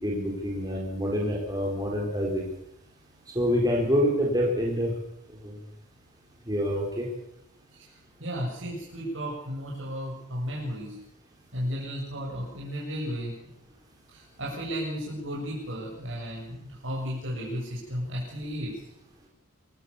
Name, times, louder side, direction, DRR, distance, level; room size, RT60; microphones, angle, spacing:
voice 1, 0.0-2.5 3.3-4.9 5.4-5.5 6.5-7.1, equal, 20° right, -2 dB, 4.2 m, -26 dB
voice 2, 8.2-11.0 11.5-13.3 14.1-18.7, equal, 60° right, -4 dB, 7.4 m, -34 dB
27.0 x 15.0 x 7.2 m, 0.80 s
head